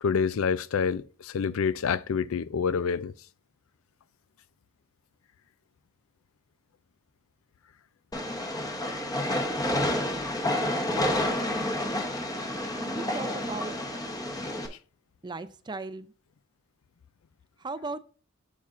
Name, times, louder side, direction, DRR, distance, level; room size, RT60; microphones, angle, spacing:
voice 1, 0.0-3.1, left 6 dB, 85° left, 0.4 m, -27 dB
Train, 8.1-14.7, left 1 dB, 20° left, 0.9 m, -29 dB
voice 2, 10.5-12.1 12.8-13.8 15.2-16.1 17.6-18.0, right 3 dB, 20° right, 0.4 m, -38 dB
8.4 x 7.2 x 2.5 m
head